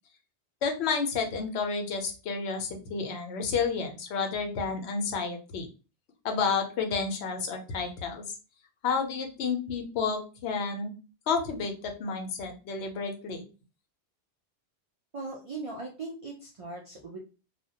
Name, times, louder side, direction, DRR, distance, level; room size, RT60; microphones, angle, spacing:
voice 1, 0.6-5.7 6.2-8.2 8.8-10.9 11.3-13.4, left 5 dB, 75° left, 3 dB, 0.8 m, -30 dB
voice 2, 15.1-17.2, right 3 dB, 60° right, -1 dB, 0.3 m, -39 dB
2.2 x 2.1 x 2.6 m, 0.33 s
omnidirectional pair, 1.1 m